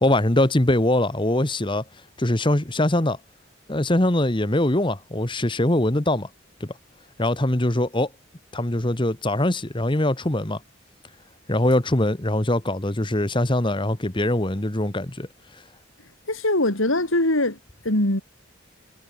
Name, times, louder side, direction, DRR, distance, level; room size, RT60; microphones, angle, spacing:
voice 1, 0.0-1.8 2.2-3.2 3.7-6.3 6.6-6.7 7.2-8.1 8.5-10.6 11.5-15.3, left 1 dB, 25° left, 1.4 m, -22 dB
voice 2, 16.3-17.6 17.8-18.2, left 1 dB, 80° left, 5.4 m, -21 dB
head